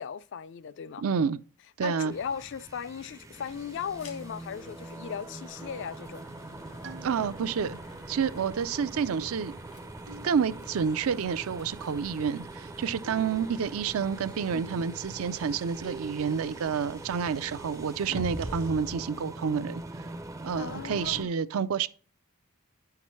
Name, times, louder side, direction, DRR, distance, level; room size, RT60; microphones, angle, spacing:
voice 1, 0.0-1.0 1.8-6.2 14.5-14.8 18.1-18.3 20.6-21.3, left 7 dB, 55° left, 0.3 m, -37 dB
voice 2, 1.0-1.4 1.8-2.1 7.0-7.8 8.1-9.5 10.2-19.8 20.4-21.9, right 6 dB, 75° right, 0.4 m, -29 dB
sound 1, 2.1-21.2, right 2 dB, 15° right, 0.4 m, -42 dB
sound 2, 3.3-18.7, left 3 dB, 90° left, 1.5 m, -54 dB
sound 3, 6.8-7.7 10.1-10.9 13.0-13.9 15.8-16.7 18.4-19.3, right 2 dB, 55° right, 1.0 m, -47 dB
9.8 x 5.8 x 3.1 m
head